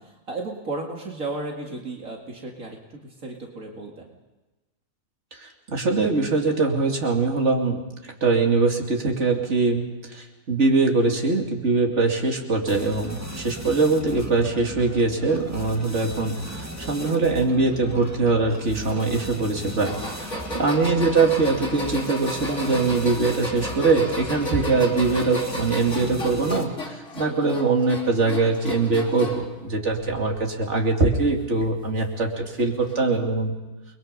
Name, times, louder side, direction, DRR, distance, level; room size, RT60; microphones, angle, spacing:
voice 1, 0.0-4.1 20.3-20.7 27.2-27.6, right 2 dB, 75° right, 0 dB, 2.7 m, -35 dB
voice 2, 5.4-7.8 8.2-33.5, right 3 dB, 55° right, 1 dB, 3.0 m, -22 dB
sound 1, 12.7-26.9, right 1 dB, 10° right, 2.2 m, -37 dB
sound 2, 19.8-29.5 29.9-30.5 31.6-31.7 32.8-32.9, left 2 dB, 60° left, 3.9 m, -34 dB
30.0 x 22.0 x 5.4 m, 1.1 s
omnidirectional pair, 1.4 m